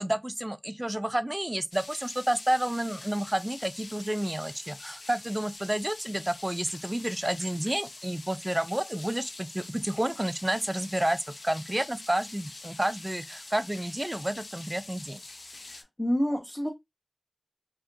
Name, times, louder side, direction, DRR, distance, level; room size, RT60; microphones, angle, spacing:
voice 1, 0.0-11.2 11.4-15.2, right 1 dB, 20° right, 0.4 m, -30 dB
sound 1, 1.7-15.8, left 2 dB, 75° left, 0.4 m, -45 dB
voice 2, 15.5-16.7, equal, 20° left, 0.7 m, -29 dB
2.8 x 2.4 x 2.6 m
wide cardioid pair, 50°, 0 cm